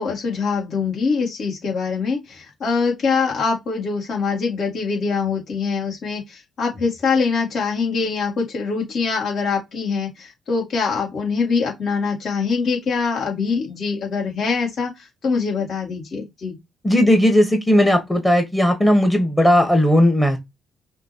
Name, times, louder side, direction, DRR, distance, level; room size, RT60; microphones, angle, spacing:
voice 1, 0.0-16.6, left 5 dB, 55° left, 2.0 m, -23 dB
voice 2, 16.8-20.4, equal, 10° left, 1.2 m, -16 dB
6.0 x 2.7 x 2.9 m
cardioid pair, 90°, 0 cm